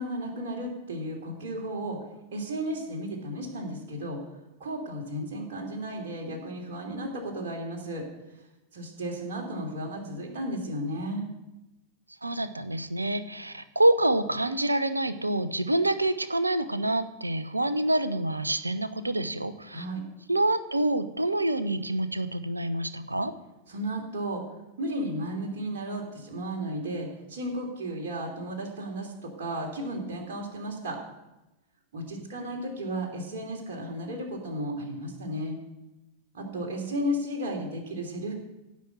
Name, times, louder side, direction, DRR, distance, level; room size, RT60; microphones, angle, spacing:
voice 1, 0.0-2.0 2.3-4.2 4.6-8.0 8.7-11.3 19.7-20.0 23.7-24.4 24.8-31.0 31.9-35.6 36.3-38.4, right 1 dB, 55° right, 0 dB, 3.2 m, -34 dB
voice 2, 12.2-19.8 20.3-23.3, right 1 dB, 85° right, 13 dB, 0.8 m, -27 dB
16.0 x 6.2 x 8.1 m, 0.97 s
figure-of-eight pair, 90°, 0 cm